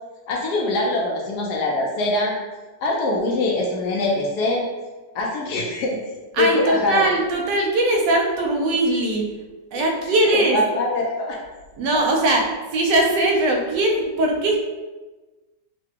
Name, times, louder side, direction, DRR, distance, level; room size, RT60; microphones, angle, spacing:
voice 1, 0.3-2.3 2.8-4.6 5.1-6.0 6.4-7.1 10.3-11.4 11.9-12.0, left 2 dB, 75° left, -1 dB, 1.0 m, -23 dB
voice 2, 6.3-9.3 9.7-10.6 11.8-14.6, right 1 dB, 75° right, 1 dB, 1.2 m, -20 dB
3.8 x 2.1 x 3.4 m, 1.2 s
omnidirectional pair, 2.0 m